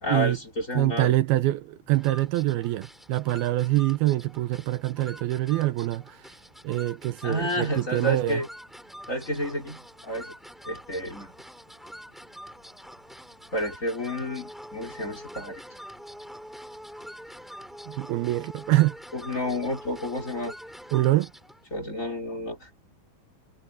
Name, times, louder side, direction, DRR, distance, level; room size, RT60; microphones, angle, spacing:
voice 1, 0.0-1.1 7.2-8.5 9.1-10.3 10.7-11.3 13.5-15.6 19.1-20.5 21.7-22.8, left 1 dB, 20° left, 4.5 m, -30 dB
voice 2, 0.8-6.2 6.6-8.4 17.9-18.9 20.9-21.3, right 16 dB, 80° right, 2.6 m, -25 dB
sound 1, 1.9-21.6, equal, ahead, 7.1 m, -45 dB
omnidirectional pair, 4.5 m